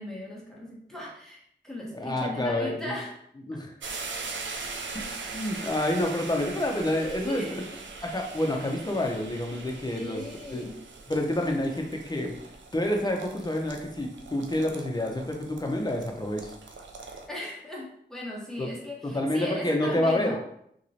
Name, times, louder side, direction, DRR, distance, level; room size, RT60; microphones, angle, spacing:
voice 1, 0.0-3.1 6.9-7.6 9.9-10.8 17.0-20.4, left 1 dB, ahead, -4 dB, 1.1 m, -38 dB
voice 2, 1.9-3.0 3.5-3.7 4.9-7.4 8.0-10.2 10.5-10.7 11.1-12.3 12.7-16.5 18.6-18.7 19.0-20.4, left 1 dB, 20° left, 2 dB, 0.6 m, -28 dB
sound 1, 3.8-17.3, right 4 dB, 90° right, 0.4 m, -41 dB
2.9 x 2.9 x 2.7 m, 0.71 s
wide cardioid pair, 60°, 19 cm